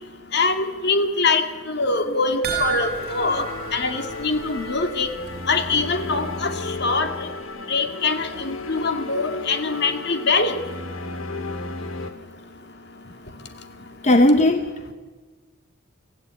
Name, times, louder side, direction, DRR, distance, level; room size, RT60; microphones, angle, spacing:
voice 1, 0.3-5.1 5.5-7.1 7.7-10.6, left 3 dB, 55° left, 7 dB, 2.3 m, -23 dB
sound 1, 2.4-5.0 5.3-5.4 5.8-5.9, right 7 dB, 45° right, 5.8 m, -31 dB
sound 2, 2.6-12.1, left 2 dB, 75° left, 2.1 m, -34 dB
voice 2, 14.0-14.9, left 1 dB, 35° left, 7 dB, 1.0 m, -17 dB
25.0 x 15.5 x 9.7 m, 1.4 s
head